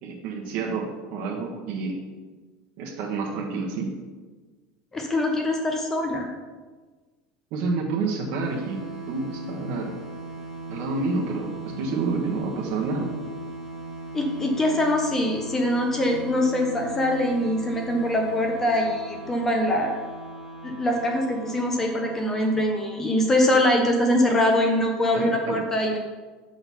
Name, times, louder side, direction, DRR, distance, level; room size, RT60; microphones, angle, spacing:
voice 1, 0.0-2.0 2.8-3.9 7.5-8.8 9.1-9.9 10.7-13.1 25.1-25.6, right 3 dB, 55° right, -1 dB, 1.1 m, -29 dB
voice 2, 4.9-6.3 14.1-19.9 20.6-26.0, left 1 dB, 15° left, 2 dB, 0.7 m, -23 dB
sound 1, 8.4-23.8, right 2 dB, 10° right, 1.4 m, -39 dB
6.1 x 3.9 x 5.6 m, 1.3 s
cardioid pair, 155°, 3 cm